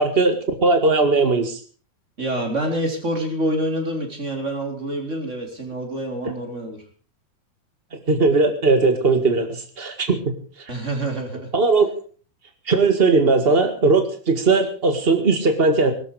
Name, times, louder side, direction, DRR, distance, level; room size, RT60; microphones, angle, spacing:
voice 1, 0.0-1.6 7.9-10.3 11.5-11.9 12.7-15.9, right 3 dB, 50° right, 7 dB, 0.6 m, -18 dB
voice 2, 2.2-6.8 10.7-11.5, right 1 dB, 20° right, 3 dB, 4.1 m, -26 dB
21.0 x 12.5 x 4.9 m, 0.41 s
omnidirectional pair, 4.4 m